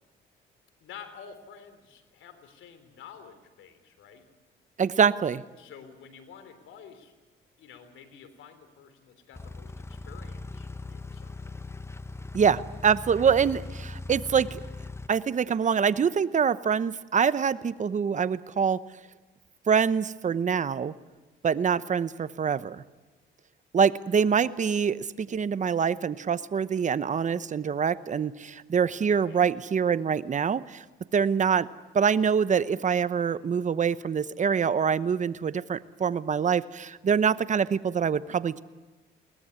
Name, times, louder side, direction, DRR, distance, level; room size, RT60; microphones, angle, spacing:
voice 1, 0.8-4.3 5.6-7.1 7.6-11.6 29.1-29.4, left 7 dB, 80° left, 9 dB, 3.4 m, -49 dB
voice 2, 4.8-5.4 12.3-14.6 15.1-18.8 19.7-20.9 21.4-22.8 23.7-30.8 31.1-31.7 31.9-38.6, right 7 dB, 40° right, 16 dB, 0.8 m, -25 dB
sound 1, 9.3-15.1, left 3 dB, 15° left, 0.8 m, -40 dB
22.0 x 19.0 x 9.8 m, 1.2 s
cardioid pair, 90°, 20 cm